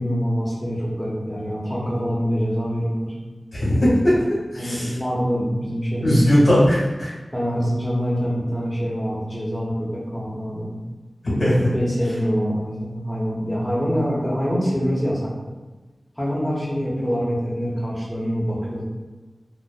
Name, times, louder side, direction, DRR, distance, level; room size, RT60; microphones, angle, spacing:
voice 1, 0.0-3.1 4.6-6.4 7.3-10.7 11.7-15.3 16.2-18.8, equal, ahead, -7 dB, 0.9 m, -25 dB
voice 2, 3.5-4.2 4.5-4.9 6.0-7.1 11.2-11.6, equal, 85° left, -7 dB, 1.2 m, -18 dB
2.9 x 2.1 x 2.4 m, 1.2 s
wide cardioid pair, 65°, 0 cm